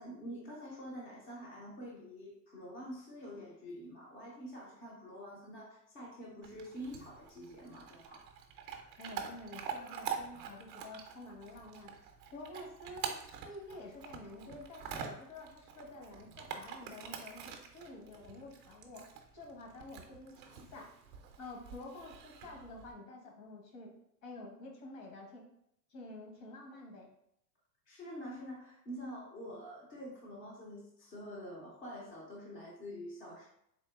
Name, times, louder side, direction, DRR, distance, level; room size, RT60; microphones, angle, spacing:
voice 1, 0.0-8.3 27.9-33.5, equal, 20° left, -4 dB, 0.5 m, -46 dB
Chewing mastication / Dog, 6.4-22.9, right 7 dB, 35° right, 0.5 m, -46 dB
voice 2, 9.0-11.9 12.3-13.2 13.4-19.0 19.3-20.9 21.4-23.9 24.2-25.4 25.9-27.1, left 2 dB, 50° left, 0 dB, 1.3 m, -49 dB
3.8 x 2.7 x 3.5 m, 0.75 s
supercardioid pair, 140°, 48 cm